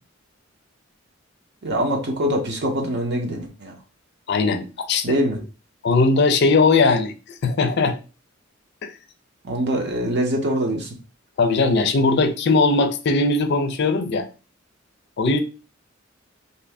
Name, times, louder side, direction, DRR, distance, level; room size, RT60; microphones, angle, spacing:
voice 1, 1.6-3.7 5.0-5.4 9.4-10.9, equal, 55° right, 2 dB, 0.7 m, -23 dB
voice 2, 4.3-5.0 5.8-7.1 7.4-8.0 8.8-8.9 11.4-14.3 15.2-15.4, left 3 dB, 55° left, 8 dB, 0.4 m, -19 dB
2.7 x 2.6 x 3.3 m, 0.33 s
head